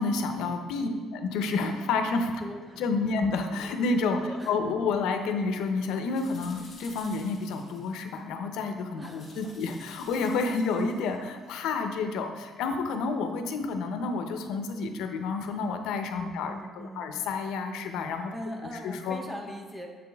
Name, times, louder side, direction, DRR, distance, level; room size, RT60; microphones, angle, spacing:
voice 1, 0.0-2.3 2.8-18.3 18.8-19.2, left 4 dB, 85° left, 6 dB, 0.6 m, -30 dB
voice 2, 2.4-3.3 4.2-4.8 6.4-6.6 9.0-9.6 16.1-17.2 18.3-19.9, equal, 10° right, 2 dB, 0.6 m, -41 dB
sound 1, 6.0-8.2 9.1-11.2, left 3 dB, 25° left, 1.4 m, -52 dB
7.5 x 5.1 x 3.4 m, 1.5 s
cardioid pair, 175°, 0 cm